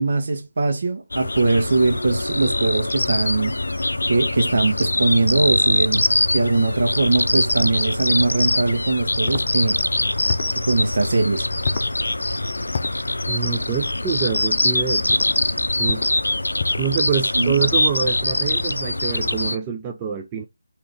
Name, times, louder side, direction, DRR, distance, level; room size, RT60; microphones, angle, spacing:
voice 1, 0.0-3.5 4.1-6.0 6.3-9.8 10.5-11.5 17.3-17.5, right 3 dB, 55° right, 1.0 m, -21 dB
sound 1, 1.1-19.6, left 2 dB, 85° left, 0.4 m, -23 dB
sound 2, 9.3-9.5 10.3-10.6 11.6-11.9 12.7-13.0 14.2-14.5 15.1-15.3 15.9-16.2 16.6-16.9, left 4 dB, 45° left, 0.7 m, -29 dB
voice 2, 13.2-15.2 15.8-16.1 16.8-20.5, right 7 dB, 15° right, 0.4 m, -26 dB
3.8 x 2.9 x 3.4 m
figure-of-eight pair, 160°, 0 cm